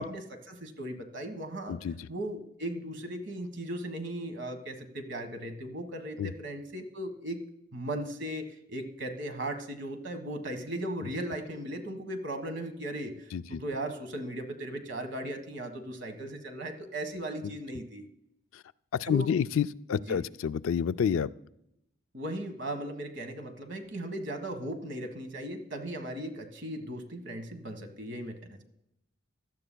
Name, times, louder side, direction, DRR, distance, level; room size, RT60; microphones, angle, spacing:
voice 1, 0.0-1.8 2.1-7.4 7.7-18.1 19.0-19.3 20.1-20.2 22.1-28.6, right 1 dB, 55° right, 7 dB, 1.5 m, -37 dB
voice 2, 19.0-21.3, left 7 dB, 75° left, 14 dB, 0.3 m, -28 dB
16.5 x 12.5 x 2.2 m, 0.81 s
head